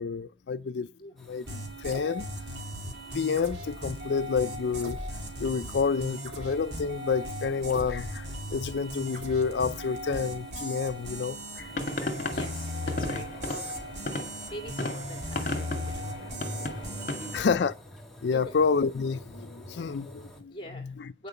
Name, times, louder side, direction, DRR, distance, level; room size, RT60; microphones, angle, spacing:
voice 1, 0.0-0.9 1.3-2.3 3.1-5.0 5.4-11.7 12.0-12.1 17.3-17.7 18.2-20.9, left 5 dB, 80° left, 0.5 m, -29 dB
sound 1, 1.2-20.4, equal, ahead, 1.9 m, -48 dB
sound 2, 1.5-17.5, equal, 70° right, 2.8 m, -38 dB
sound 3, 11.7-17.4, left 2 dB, 45° left, 2.2 m, -35 dB
voice 2, 12.2-13.7 14.5-17.5 18.3-18.5 20.5-21.3, equal, 30° left, 2.6 m, -45 dB
9.4 x 6.7 x 7.0 m
head